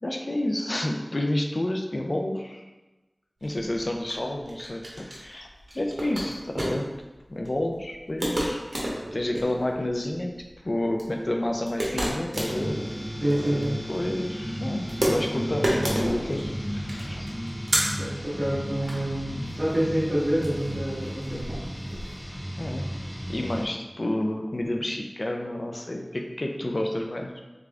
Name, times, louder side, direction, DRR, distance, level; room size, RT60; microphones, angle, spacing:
voice 1, 0.0-2.6 3.4-5.5 5.7-6.9 7.3-8.7 9.1-10.4 10.6-12.8 13.9-17.3 22.6-22.9 23.3-27.4, left 1 dB, 60° left, 3 dB, 0.5 m, -29 dB
sound 1, 3.4-22.2, right 1 dB, 80° right, 0.9 m, -32 dB
sound 2, 12.3-23.7, equal, 5° left, 0.7 m, -34 dB
voice 2, 13.2-13.8 18.0-21.6, right 1 dB, 50° right, -13 dB, 1.5 m, -27 dB
3.6 x 3.4 x 3.6 m, 1.1 s
wide cardioid pair, 40°, 0 cm